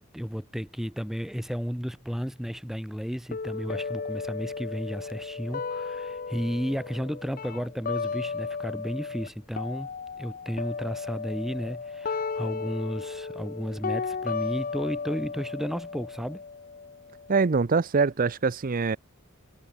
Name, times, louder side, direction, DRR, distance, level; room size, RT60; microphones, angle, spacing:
voice 1, 0.0-16.4, equal, ahead, 0.8 m, -33 dB
sound 1, 3.3-9.3 9.5-17.3, left 5 dB, 40° left, 0.6 m, -35 dB
voice 2, 17.3-19.0, right 4 dB, 40° right, 0.5 m, -24 dB
head